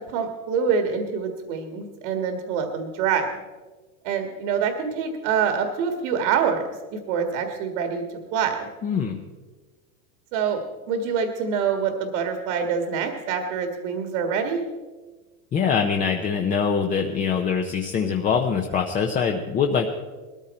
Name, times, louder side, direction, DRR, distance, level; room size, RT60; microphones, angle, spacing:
voice 1, 0.1-3.3 4.0-8.0 8.3-8.7 10.3-10.6 10.9-14.6, right 6 dB, 60° right, 5 dB, 1.9 m, -25 dB
voice 2, 8.8-9.2 15.5-19.9, left 6 dB, 20° left, 2 dB, 0.6 m, -23 dB
19.0 x 14.0 x 4.3 m, 1.3 s
supercardioid pair, 150°, 43 cm